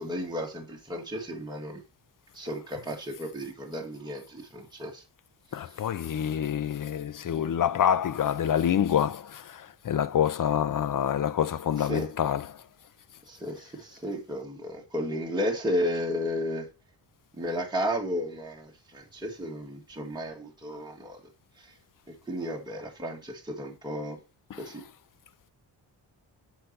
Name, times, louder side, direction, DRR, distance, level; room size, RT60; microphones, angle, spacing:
voice 1, 0.0-1.8 2.4-5.0 11.9-12.1 13.3-16.7 17.4-21.2 22.3-24.2 24.7-24.8, equal, 10° right, 1.7 m, -33 dB
voice 2, 5.5-12.6 24.5-24.7, left 9 dB, 50° left, 0.6 m, -27 dB
7.9 x 4.2 x 6.5 m
cardioid pair, 100°, 43 cm